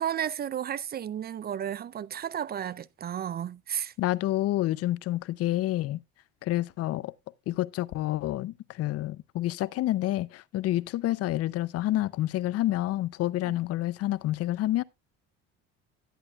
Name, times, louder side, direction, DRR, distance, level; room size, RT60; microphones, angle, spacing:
voice 1, 0.0-3.9 13.4-13.5, right 9 dB, 35° right, 0.4 m, -33 dB
voice 2, 4.0-6.0 6.4-7.1 7.5-14.8, left 15 dB, 55° left, 0.5 m, -28 dB
11.0 x 10.5 x 2.3 m
cardioid pair, 105°, 30 cm